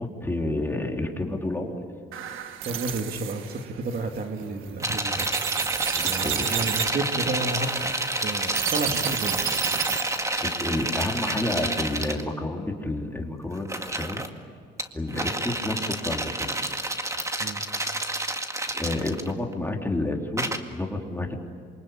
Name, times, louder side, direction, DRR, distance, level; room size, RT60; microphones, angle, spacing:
voice 1, 0.0-1.8 5.9-6.6 10.4-14.3 14.9-16.6 18.7-21.3, left 2 dB, 10° left, 1 dB, 3.7 m, -30 dB
sound 1, 2.1-10.2, right 11 dB, 90° right, 1.5 m, -32 dB
voice 2, 2.6-5.3 6.0-7.7 8.2-9.4 15.1-15.3 17.4-17.6, right 3 dB, 50° right, 4 dB, 2.5 m, -31 dB
sound 2, 4.8-12.2 13.6-14.3 14.8-19.5 20.4-20.6, right 2 dB, 15° right, 2.0 m, -29 dB
27.0 x 24.5 x 8.7 m, 2.2 s
cardioid pair, 90°, 20 cm